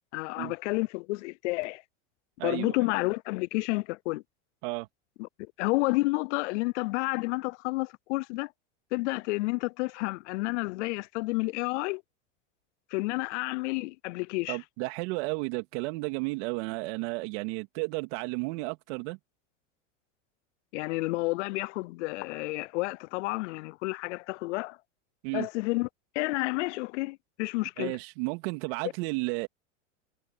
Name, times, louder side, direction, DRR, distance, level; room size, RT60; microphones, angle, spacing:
voice 1, 0.1-1.8 2.4-4.2 5.2-5.3 5.6-8.5 8.9-12.0 12.9-14.6 20.7-24.8 25.3-25.9 26.1-27.9, left 23 dB, 70° left, 0.6 m, -30 dB
voice 2, 2.4-2.7 4.6-4.9 14.5-19.2 25.2-25.5 27.8-29.5, right 27 dB, 65° right, 2.7 m, -33 dB
hypercardioid pair, 110°, 37 cm